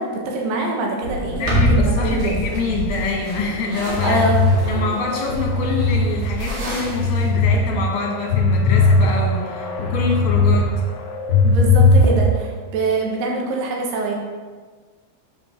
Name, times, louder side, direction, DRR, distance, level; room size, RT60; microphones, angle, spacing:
voice 1, 0.0-2.4 4.0-4.8 11.4-14.2, right 2 dB, 85° right, 0 dB, 3.4 m, -24 dB
sound 1, 1.0-7.3, right 1 dB, 55° right, 3.4 m, -25 dB
voice 2, 1.3-4.3 4.7-10.7, left 4 dB, 60° left, -2 dB, 2.7 m, -25 dB
sound 2, 4.0-6.1 6.5-7.6 8.0-10.6 10.9-12.4, left 3 dB, 75° left, 2.2 m, -18 dB
8.5 x 5.2 x 6.3 m, 1.5 s
omnidirectional pair, 4.6 m